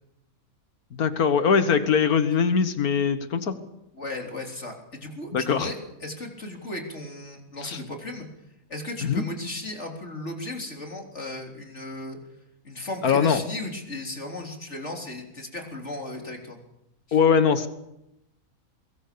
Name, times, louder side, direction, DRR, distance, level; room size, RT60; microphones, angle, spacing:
voice 1, 0.9-3.5 5.3-5.7 7.6-7.8 9.0-9.2 13.0-13.4 17.1-17.7, left 6 dB, 90° left, 10 dB, 1.9 m, -21 dB
voice 2, 3.9-8.3 8.7-12.2 12.6-16.6 17.1-17.2, left 2 dB, 50° left, 2 dB, 4.0 m, -36 dB
24.0 x 20.5 x 6.9 m, 0.86 s
omnidirectional pair, 1.5 m